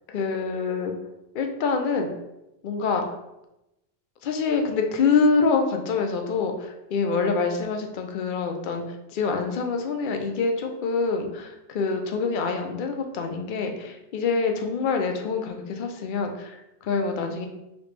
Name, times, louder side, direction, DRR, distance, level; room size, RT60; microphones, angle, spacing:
voice 1, 0.1-0.9 1.3-2.1 2.6-3.1 4.2-17.5, left 4 dB, 60° left, 4 dB, 0.6 m, -26 dB
3.1 x 2.9 x 3.2 m, 0.91 s
omnidirectional pair, 1.1 m